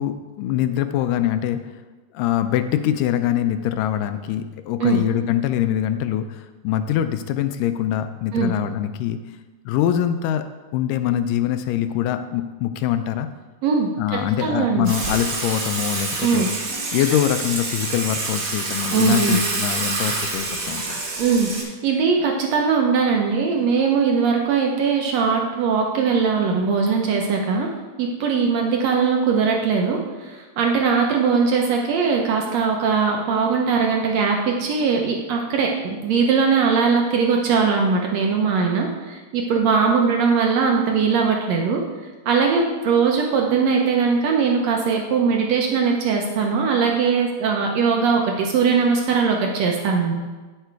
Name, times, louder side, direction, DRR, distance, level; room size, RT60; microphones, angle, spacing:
voice 1, 0.0-1.6 2.1-9.2 9.7-10.5 10.7-13.3 14.0-16.5 16.9-20.8, left 11 dB, 80° left, 9 dB, 2.1 m, -23 dB
voice 2, 13.6-14.9 16.2-16.5 18.9-19.4 21.2-27.7 28.0-41.8 42.2-50.1, right 5 dB, 75° right, 1 dB, 1.6 m, -20 dB
Water / Water tap faucet / Sink (filling or washing), 14.9-21.6, right 3 dB, 50° right, 2.0 m, -27 dB
9.7 x 6.7 x 4.6 m, 1.3 s
omnidirectional pair, 3.9 m